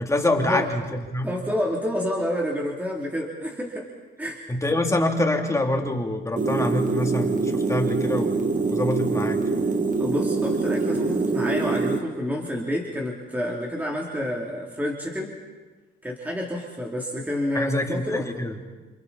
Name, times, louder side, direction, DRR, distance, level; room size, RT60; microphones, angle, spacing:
voice 1, 0.0-1.3 4.5-9.7 17.5-18.6, left 1 dB, 15° left, 2 dB, 3.0 m, -26 dB
voice 2, 1.2-3.9 4.2-4.4 10.0-15.3 16.0-18.2, left 1 dB, 10° right, -2 dB, 3.2 m, -29 dB
sound 1, 6.4-12.0, right 3 dB, 40° right, 2.1 m, -24 dB
29.5 x 27.0 x 4.2 m, 1.3 s
cardioid pair, 90°, 20 cm